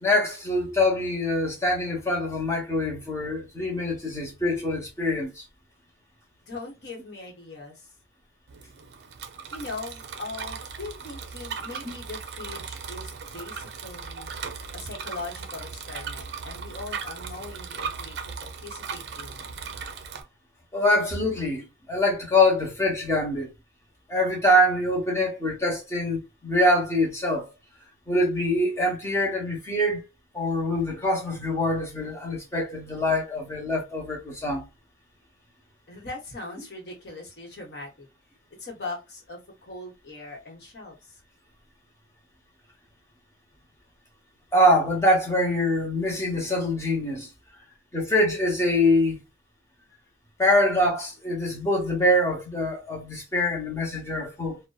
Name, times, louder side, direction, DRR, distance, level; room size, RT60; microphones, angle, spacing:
voice 1, 0.0-5.4 11.9-12.0 20.7-23.5 24.1-27.5 28.1-30.0 30.3-34.6 44.5-47.3 47.9-49.2 50.4-54.6, left 1 dB, 15° left, 0.8 m, -24 dB
voice 2, 6.5-7.9 9.5-14.3 14.7-19.4 35.9-38.1 38.6-41.2, left 3 dB, 60° left, 1.0 m, -40 dB
Bicycle, 8.5-20.2, right 5 dB, 60° right, 0.4 m, -37 dB
2.6 x 2.1 x 2.2 m
head